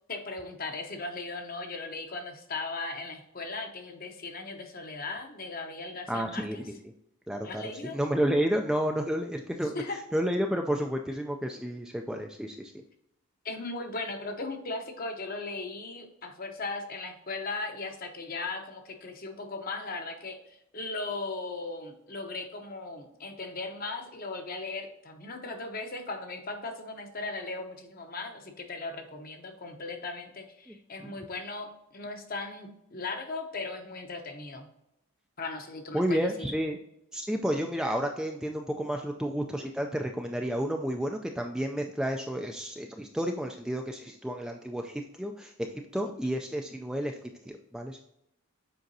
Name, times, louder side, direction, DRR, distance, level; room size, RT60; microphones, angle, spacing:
voice 1, 0.1-6.6 7.4-8.0 9.8-10.0 13.4-34.7 35.4-36.3 46.0-46.1, left 3 dB, 40° left, 5 dB, 0.9 m, -38 dB
voice 2, 6.1-6.7 7.3-12.7 30.7-31.1 35.9-36.8 37.1-48.0, equal, 5° right, 2 dB, 0.3 m, -31 dB
7.8 x 5.0 x 2.7 m, 0.81 s
head